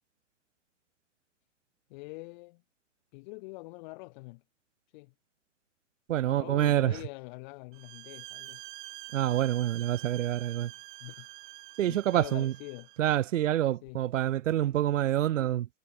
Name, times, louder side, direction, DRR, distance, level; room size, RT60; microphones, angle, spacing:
voice 1, 1.9-2.6 3.1-4.4 4.9-5.1 6.2-8.7 10.7-11.3 11.8-12.9 13.8-14.0 14.9-15.0, left 26 dB, 40° left, 3.5 m, -45 dB
voice 2, 6.1-6.9 9.1-10.7 11.8-12.5 13.0-15.7, right 12 dB, 80° right, 0.6 m, -27 dB
sound 1, 7.7-13.0, right 18 dB, 40° right, 1.4 m, -47 dB
hypercardioid pair, 140°, 37 cm